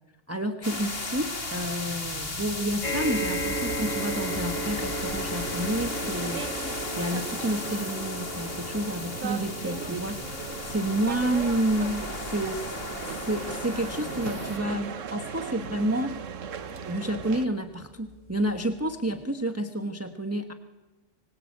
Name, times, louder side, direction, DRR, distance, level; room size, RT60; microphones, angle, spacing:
voice 1, 0.3-6.5 7.0-12.8 13.0-16.2 16.9-20.5, right 1 dB, 10° right, 6 dB, 1.3 m, -30 dB
sound 1, 0.6-14.6, left 2 dB, 50° left, 2.9 m, -35 dB
sound 2, 2.8-17.4 18.1-18.2 18.5-18.6, right 2 dB, 35° left, 3.9 m, -37 dB
sound 3, 6.0-17.5, right 7 dB, 80° right, 1.4 m, -39 dB
25.5 x 24.0 x 8.6 m, 1.2 s
omnidirectional pair, 1.3 m